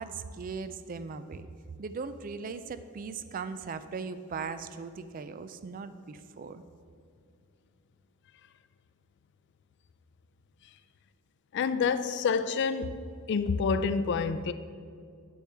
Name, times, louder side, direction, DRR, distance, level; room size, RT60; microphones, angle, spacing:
voice 1, 0.0-1.5 1.8-6.6, right 5 dB, 40° right, 0.3 m, -39 dB
voice 2, 11.5-13.0 13.3-14.5, left 5 dB, 55° left, 0.3 m, -28 dB
9.0 x 7.1 x 3.4 m
head